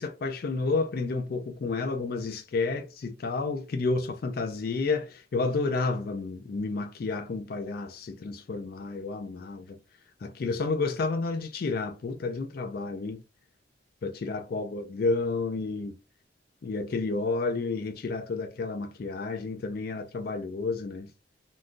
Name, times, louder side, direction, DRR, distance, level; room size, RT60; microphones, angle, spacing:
voice 1, 0.0-9.8 10.2-13.2 14.0-15.9 16.6-21.1, left 3 dB, 50° left, 0.3 m, -31 dB
3.6 x 2.3 x 2.4 m
head